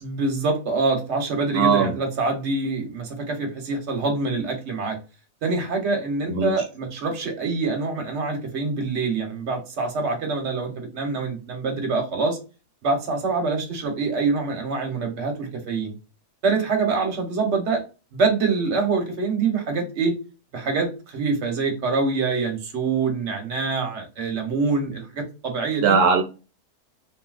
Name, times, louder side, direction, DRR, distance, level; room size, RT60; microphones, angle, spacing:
voice 1, 0.0-5.0 5.4-12.4 12.8-15.9 16.4-17.8 18.1-20.1 20.5-26.0, right 4 dB, 50° right, 1.2 m, -25 dB
voice 2, 1.5-1.9 6.3-6.5 25.8-26.2, right 5 dB, 80° right, 1.1 m, -19 dB
3.3 x 2.7 x 2.4 m
omnidirectional pair, 1.6 m